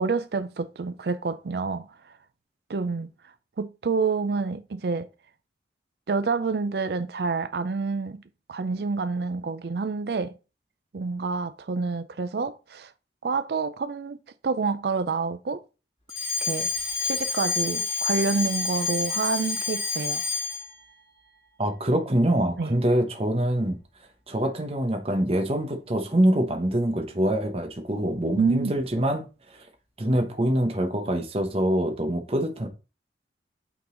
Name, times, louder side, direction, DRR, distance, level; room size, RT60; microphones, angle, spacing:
voice 1, 0.0-1.9 2.7-3.1 3.6-5.1 6.1-8.2 8.5-10.3 10.9-12.9 13.2-14.2 14.4-15.6 16.4-16.7 17.0-20.3 22.6-22.8 28.4-28.7, right 4 dB, 65° right, 0.5 m, -28 dB
Alarm, 16.1-20.7, left 5 dB, 30° left, 3.0 m, -28 dB
voice 2, 21.6-23.8 24.3-29.2 30.0-32.7, right 1 dB, 35° right, 1.0 m, -24 dB
8.5 x 3.9 x 3.8 m
head